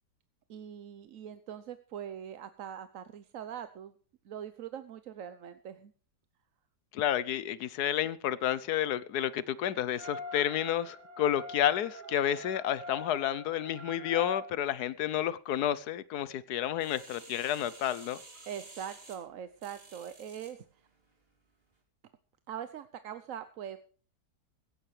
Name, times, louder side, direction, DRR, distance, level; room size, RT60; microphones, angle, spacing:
voice 1, 0.5-3.9 4.2-5.9 18.5-20.7 22.5-23.8, right 9 dB, 60° right, 1.1 m, -42 dB
voice 2, 6.9-18.2, left 11 dB, 75° left, 1.3 m, -30 dB
sound 1, 9.9-14.4, left 2 dB, 75° right, 4.3 m, -43 dB
sound 2, 16.8-20.6 21.1-21.2, right 2 dB, 35° right, 3.2 m, -52 dB
16.0 x 16.0 x 3.3 m
omnidirectional pair, 1.8 m